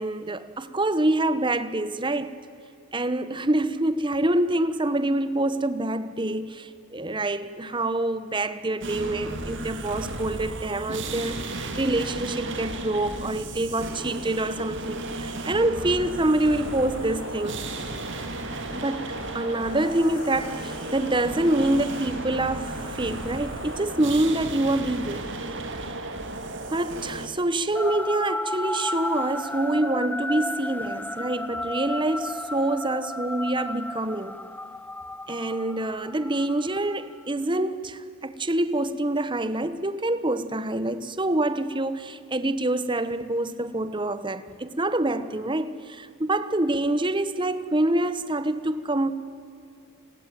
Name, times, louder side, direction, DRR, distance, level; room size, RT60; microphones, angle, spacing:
voice 1, 0.0-2.4 2.9-17.6 18.7-25.3 25.7-25.8 26.7-34.4 35.3-49.1, right 1 dB, 20° right, 1.1 m, -26 dB
sound 1, 8.8-27.3, right 2 dB, 55° right, 2.8 m, -34 dB
sound 2, 16.5-24.1, left 1 dB, 90° left, 6.5 m, -42 dB
sound 3, 27.7-37.2, left 2 dB, 10° left, 0.6 m, -33 dB
29.0 x 20.5 x 9.2 m
head